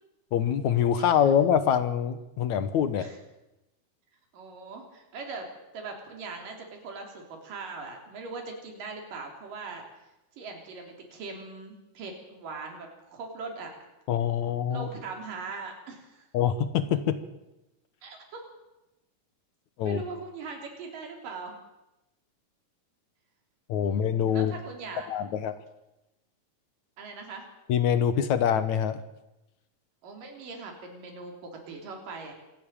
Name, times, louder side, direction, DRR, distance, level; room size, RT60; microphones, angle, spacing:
voice 1, 0.3-3.1 14.1-14.9 16.3-17.2 19.8-20.0 23.7-24.5 25.1-25.5 27.7-29.0, left 9 dB, 65° left, 11 dB, 2.4 m, -25 dB
voice 2, 4.3-9.8 10.4-13.7 14.7-16.3 18.0-18.5 19.8-21.6 23.9-25.1 27.0-27.4 30.0-32.3, right 4 dB, 85° right, 2 dB, 5.0 m, -40 dB
26.0 x 12.0 x 8.9 m, 0.96 s
omnidirectional pair, 3.8 m